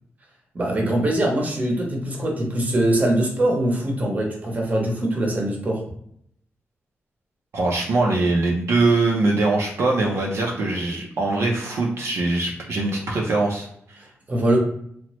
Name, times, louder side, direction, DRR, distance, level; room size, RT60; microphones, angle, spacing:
voice 1, 0.5-5.8 14.3-14.6, right 1 dB, 35° right, 0 dB, 0.7 m, -22 dB
voice 2, 7.5-14.1, right 2 dB, 70° right, -1 dB, 0.5 m, -22 dB
2.9 x 2.1 x 3.0 m, 0.69 s
wide cardioid pair, 145°, 5 cm